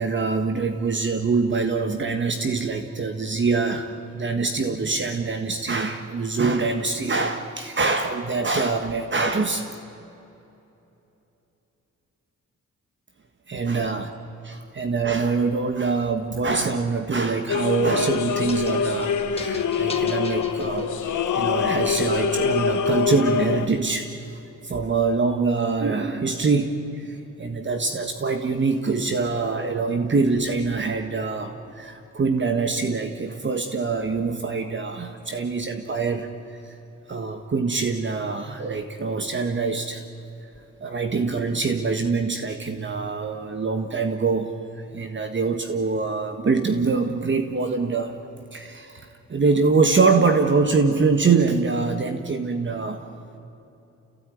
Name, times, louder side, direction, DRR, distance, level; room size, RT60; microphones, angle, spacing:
voice 1, 0.0-9.6 13.5-14.1 14.4-36.3 36.6-36.7 37.1-40.0 40.8-48.1 48.5-53.0, right 4 dB, 40° right, 6 dB, 1.5 m, -24 dB
sound 1, 17.5-23.7, left 6 dB, 85° left, 1.5 m, -24 dB
sound 2, 18.0-21.3, left 3 dB, 20° left, 2.0 m, -39 dB
29.0 x 16.5 x 9.4 m, 2.9 s
wide cardioid pair, 115°, 30 cm